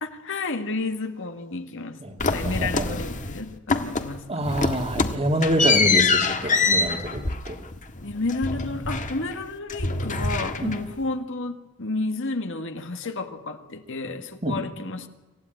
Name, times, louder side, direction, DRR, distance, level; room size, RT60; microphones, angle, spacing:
voice 1, 0.0-4.6 8.0-15.1, left 3 dB, 60° left, 1.8 m, -31 dB
sound 1, 2.2-3.4 3.7-4.2 4.5-9.4 9.7-11.0, left 4 dB, 35° left, 1.6 m, -25 dB
voice 2, 2.4-3.0 4.3-7.6 10.6-10.7 14.4-14.6, right 1 dB, 30° right, 2.2 m, -26 dB
27.0 x 15.5 x 9.1 m
head